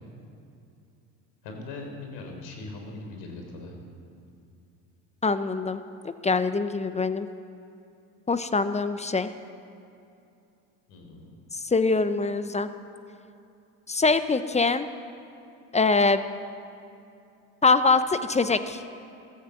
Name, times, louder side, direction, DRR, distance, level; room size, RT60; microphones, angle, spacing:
voice 1, 1.4-3.7 10.9-11.4, left 2 dB, 70° left, 2 dB, 3.9 m, -40 dB
voice 2, 5.2-5.8 6.2-7.3 8.3-9.3 11.5-12.7 13.9-14.9 15.7-16.2 17.6-18.8, left 3 dB, 20° left, 12 dB, 0.7 m, -23 dB
15.0 x 13.5 x 7.2 m, 2.6 s
supercardioid pair, 80°, 38 cm